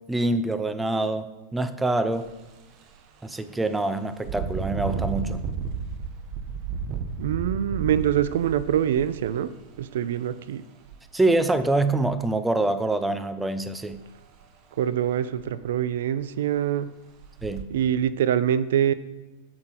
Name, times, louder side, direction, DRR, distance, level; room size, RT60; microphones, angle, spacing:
voice 1, 0.1-2.3 3.2-5.4 11.1-14.0 17.4-17.7, right 2 dB, 5° right, 12 dB, 0.4 m, -25 dB
Engine, 2.1-2.3 2.8-3.0 4.2-10.0 10.8-11.0 11.4-12.1 13.9-14.0 14.4-14.5 15.0-15.1 15.4-15.9 16.5-16.6 17.2-17.6, right 5 dB, 35° right, 0.8 m, -33 dB
voice 2, 7.2-10.6 14.8-16.9 17.7-18.9, right 10 dB, 75° right, 16 dB, 0.4 m, -25 dB
7.8 x 7.7 x 4.4 m, 1.2 s
supercardioid pair, 155°, 0 cm